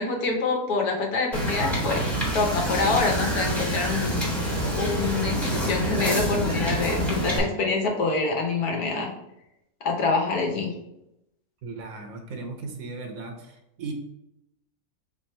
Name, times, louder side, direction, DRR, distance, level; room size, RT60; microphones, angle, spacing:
voice 1, 0.0-4.3 4.8-9.1 9.8-10.7, left 4 dB, 80° left, 1 dB, 1.4 m, -26 dB
Wind / Boat Water vehicle, 1.3-7.4, equal, ahead, 0.9 m, -26 dB
voice 2, 11.6-13.5 13.8-13.9, right 3 dB, 70° right, 4 dB, 1.1 m, -36 dB
3.6 x 3.3 x 4.3 m, 0.85 s
omnidirectional pair, 1.6 m